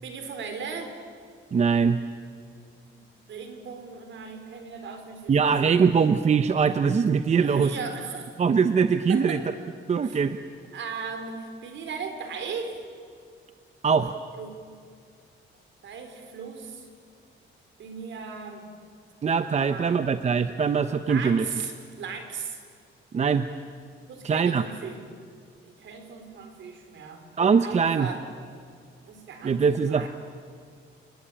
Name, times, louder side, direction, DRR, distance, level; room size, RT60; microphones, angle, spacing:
voice 1, 0.0-0.9 2.9-3.0 3.3-5.9 7.4-8.3 9.1-9.4 10.0-10.2 10.7-12.8 14.3-14.5 15.8-16.9 17.8-18.7 19.6-20.0 21.0-22.6 24.1-25.0 25.6-27.2 27.6-28.2 29.0-30.1, right 5 dB, 65° right, 6 dB, 4.3 m, -37 dB
voice 2, 1.5-2.0 5.3-7.7 8.4-9.4 9.9-10.4 13.8-14.2 19.2-21.4 23.1-23.5 24.2-24.6 27.4-28.1 29.4-30.1, right 6 dB, 35° right, 10 dB, 0.8 m, -22 dB
29.5 x 20.5 x 8.8 m, 2.2 s
cardioid pair, 145°, 21 cm